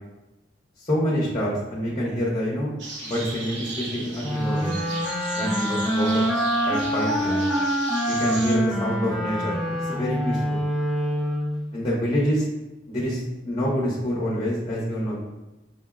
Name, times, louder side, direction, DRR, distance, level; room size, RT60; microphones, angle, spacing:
voice 1, 0.8-2.7 3.0-4.8 5.3-6.2 6.6-7.5 8.1-9.6 9.8-10.6 11.7-12.5 12.9-15.2, equal, 30° left, -6 dB, 0.7 m, -26 dB
sound 1, 2.8-8.6, right 2 dB, 80° right, 0.7 m, -36 dB
sound 2, 4.2-11.7, equal, ahead, 0.5 m, -25 dB
5.3 x 2.0 x 2.3 m, 1.0 s
head